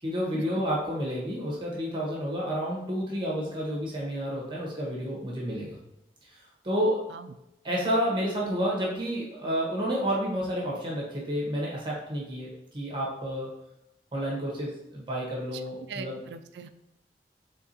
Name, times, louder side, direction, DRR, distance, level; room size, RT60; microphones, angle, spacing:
voice 1, 0.0-5.8 6.2-6.4 6.6-7.0 7.6-13.5 14.1-16.2, equal, 25° right, -3 dB, 1.2 m, -30 dB
voice 2, 15.9-16.7, right 5 dB, 80° right, 10 dB, 0.4 m, -40 dB
4.6 x 3.5 x 2.8 m, 0.86 s
head